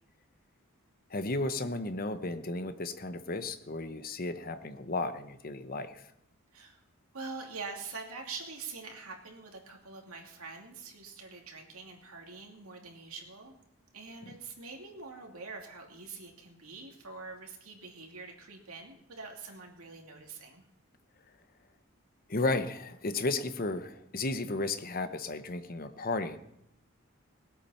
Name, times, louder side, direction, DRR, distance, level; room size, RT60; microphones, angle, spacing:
voice 1, 1.1-6.0 14.2-14.3 22.3-26.4, left 2 dB, 45° left, 10 dB, 0.9 m, -34 dB
voice 2, 7.1-13.6 13.9-20.6, right 4 dB, 85° right, 1 dB, 2.7 m, -45 dB
20.0 x 8.7 x 5.6 m, 0.79 s
head